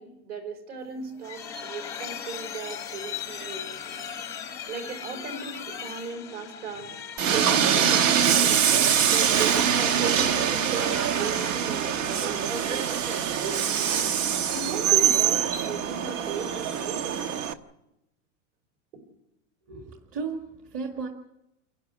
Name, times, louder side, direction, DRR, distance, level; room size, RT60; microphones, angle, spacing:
voice 1, 0.0-4.1 4.7-7.0 7.3-8.6 9.1-12.9 13.4-14.2 14.5-17.5, right 5 dB, 55° right, 5 dB, 5.5 m, -36 dB
sound 1, 0.8-8.4, left 8 dB, 10° left, 0.7 m, -38 dB
Train, 7.2-17.5, right 8 dB, 80° right, 1.4 m, -24 dB
voice 2, 19.7-21.1, right 5 dB, 35° right, 3 dB, 1.9 m, -34 dB
29.0 x 11.5 x 9.6 m, 0.93 s
supercardioid pair, 170°, 38 cm